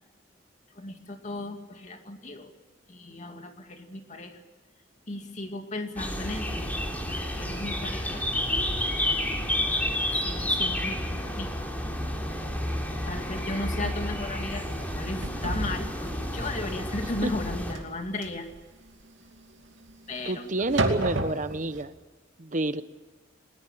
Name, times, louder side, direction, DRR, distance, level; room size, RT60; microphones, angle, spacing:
voice 1, 0.7-2.5 2.9-4.4 5.1-8.2 10.1-11.5 13.0-18.5 20.1-20.5, left 2 dB, 40° left, 5 dB, 2.5 m, -36 dB
sound 1, 6.0-17.7, left 1 dB, 10° left, 3.5 m, -30 dB
sound 2, 12.2-12.3 12.8-12.9 13.3-13.5 13.9-14.3 14.6-21.8, right 2 dB, 65° right, 2.5 m, -33 dB
voice 2, 20.2-21.9 22.4-22.8, right 2 dB, 40° right, 13 dB, 0.9 m, -29 dB
21.0 x 20.0 x 7.4 m, 1.3 s
head